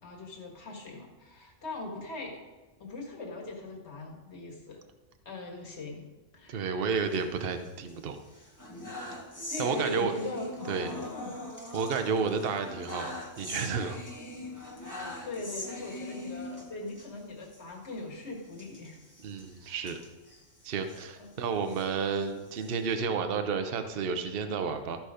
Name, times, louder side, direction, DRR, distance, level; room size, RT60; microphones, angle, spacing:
voice 1, 0.0-2.4 2.8-4.8 5.3-6.1 6.3-6.9 9.5-11.4 15.2-19.0 19.6-19.9 21.2-21.3, left 2 dB, 60° left, 1 dB, 2.0 m, -40 dB
voice 2, 6.5-8.2 9.6-10.1 10.7-10.9 11.7-14.0 19.2-20.0 20.6-25.0, right 5 dB, 50° right, 7 dB, 0.9 m, -31 dB
sound 1, 7.0-7.9 8.3-17.1 17.4-17.6 17.8-18.0 18.5-21.0 21.5-22.9, left 1 dB, 15° left, 1.6 m, -42 dB
14.0 x 6.1 x 5.0 m, 1.2 s
omnidirectional pair, 1.3 m